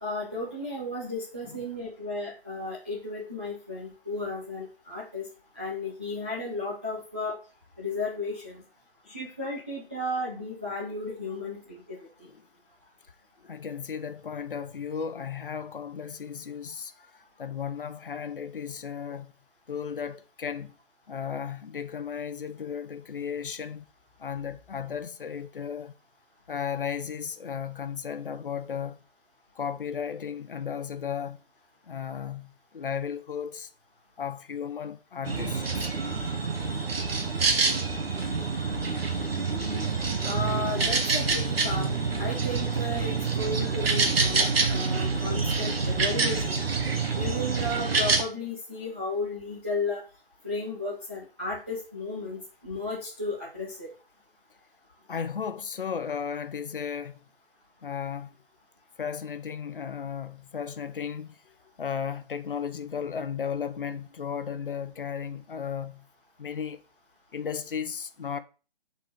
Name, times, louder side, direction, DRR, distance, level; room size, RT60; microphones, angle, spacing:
voice 1, 0.0-5.2 5.6-7.4 7.8-8.6 9.1-12.0 40.2-41.9 42.2-46.6 47.1-50.0 50.4-53.9, left 2 dB, 15° right, 0.5 m, -34 dB
voice 2, 13.4-19.3 19.7-20.8 21.1-23.9 24.2-25.9 26.5-29.0 29.6-31.4 31.8-33.7 34.2-35.9 55.1-57.3 57.8-58.4 59.0-66.1 66.4-66.8 67.3-68.4, left 7 dB, 60° left, 0.7 m, -35 dB
sound 1, 35.2-48.2, right 4 dB, 75° right, 1.3 m, -27 dB
5.8 x 4.2 x 5.0 m
hypercardioid pair, 170°, 30 cm